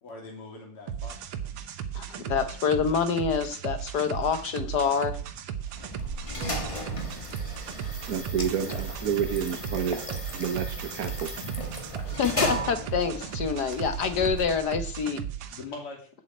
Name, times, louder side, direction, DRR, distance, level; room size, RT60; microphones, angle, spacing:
voice 1, 0.0-1.2 7.5-7.8 15.5-16.1, left 3 dB, 90° left, 1 dB, 3.7 m, -42 dB
sound 1, 0.9-15.6, right 9 dB, 80° right, 1.9 m, -36 dB
voice 2, 1.9-5.1 12.0-15.2, left 6 dB, 55° left, 9 dB, 1.3 m, -27 dB
sound 2, 5.6-14.9, left 1 dB, 15° left, 1.5 m, -36 dB
voice 3, 8.1-10.0 10.3-11.3, right 8 dB, 60° right, 7 dB, 1.0 m, -29 dB
7.6 x 7.5 x 8.4 m, 0.43 s
omnidirectional pair, 2.4 m